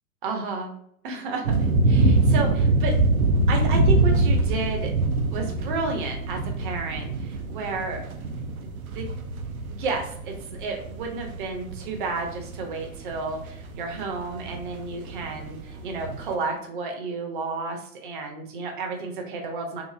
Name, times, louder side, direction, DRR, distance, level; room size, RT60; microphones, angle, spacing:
voice 1, 0.2-0.7 1.0-2.9 3.5-4.9 5.3-8.0 8.6-9.0 9.6-19.8, right 3 dB, 35° right, 2 dB, 0.7 m, -32 dB
sound 1, 1.4-16.3, right 2 dB, 75° right, 0.6 m, -24 dB
2.9 x 2.6 x 2.4 m, 0.69 s
figure-of-eight pair, 115°, 43 cm